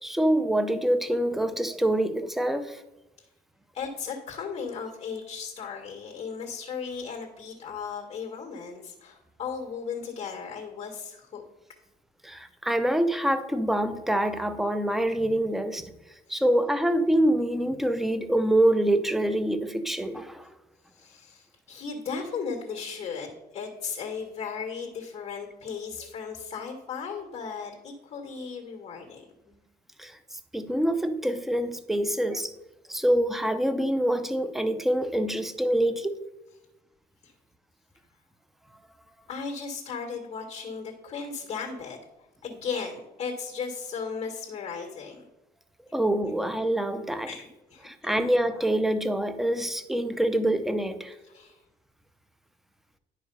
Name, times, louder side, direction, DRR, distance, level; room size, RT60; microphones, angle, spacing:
voice 1, 0.0-2.8 12.2-15.9 16.3-20.5 30.0-32.5 32.9-36.2 45.9-47.3 47.8-51.1, right 1 dB, ahead, 10 dB, 0.7 m, -25 dB
voice 2, 3.7-11.4 16.3-16.4 20.9-29.6 37.2-37.3 39.3-42.0 42.4-45.2 47.3-48.2 51.3-51.6, left 5 dB, 35° left, 1 dB, 1.8 m, -36 dB
10.5 x 4.9 x 5.5 m, 1.0 s
cardioid pair, 110°, 17 cm